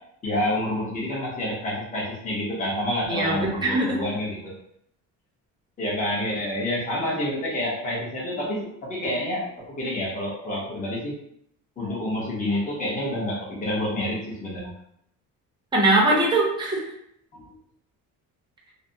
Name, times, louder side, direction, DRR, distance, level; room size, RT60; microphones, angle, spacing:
voice 1, 0.2-4.5 5.8-11.1 11.8-14.7, left 1 dB, 25° left, -5 dB, 0.8 m, -28 dB
voice 2, 3.1-4.0 15.7-16.9, right 2 dB, 15° right, -3 dB, 0.6 m, -21 dB
2.5 x 2.0 x 2.5 m, 0.72 s
cardioid pair, 135°, 33 cm